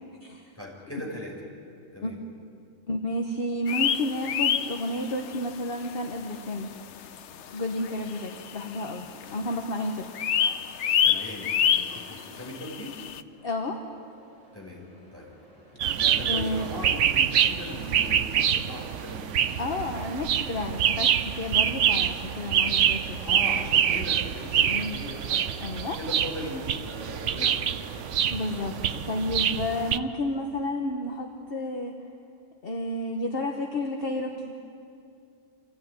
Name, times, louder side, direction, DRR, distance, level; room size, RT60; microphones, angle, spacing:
voice 1, 0.6-1.3 1.9-2.2 11.0-12.9 14.5-15.3 15.7-19.3 19.7-19.9 21.4-21.7 23.1-25.5 26.0-27.7, left 1 dB, 10° left, -3 dB, 5.3 m, -39 dB
voice 2, 2.9-6.7 7.5-10.1 13.4-13.8 16.3-16.7 19.6-23.2 24.6-25.0 25.6-26.0 28.3-31.9 32.6-34.5, left 1 dB, 50° left, 2 dB, 1.4 m, -31 dB
sound 1, 3.7-5.4 5.7-5.9 6.3-6.4 7.2-7.3 7.5-7.6 7.8-8.9 9.2-9.6 9.8-13.2, left 8 dB, 70° left, 1.0 m, -27 dB
sound 2, 13.3-29.0, right 1 dB, 25° right, 3.9 m, -51 dB
sound 3, 15.8-30.0, right 9 dB, 75° right, 1.0 m, -26 dB
25.5 x 16.0 x 9.5 m, 2.4 s
omnidirectional pair, 1.3 m